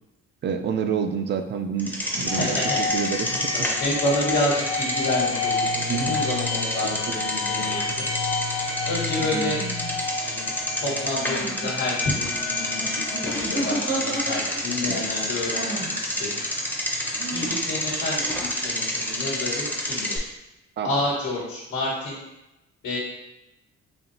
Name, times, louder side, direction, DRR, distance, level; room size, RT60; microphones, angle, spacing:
voice 1, 0.4-2.6 2.9-3.7 5.9-6.2 7.1-7.3 14.8-15.0 20.8-20.9, right 7 dB, 35° right, 7 dB, 0.4 m, -28 dB
Bicycle, 1.8-20.2, equal, 5° left, 0.6 m, -29 dB
voice 2, 2.1-2.8 3.2-8.0 8.8-9.6 10.2-10.5 10.8-16.4 17.3-20.3 20.8-22.2 22.8-23.0, left 1 dB, 80° left, -6 dB, 1.3 m, -29 dB
sound 1, 2.3-17.9, left 4 dB, 65° left, 0.5 m, -31 dB
sound 2, 7.6-7.8 9.1-10.0 11.1-11.7 13.1-14.8 15.5-16.0 17.2-17.6, right 1 dB, 75° right, 1.1 m, -32 dB
4.2 x 2.8 x 2.6 m, 0.94 s
cardioid pair, 90°, 30 cm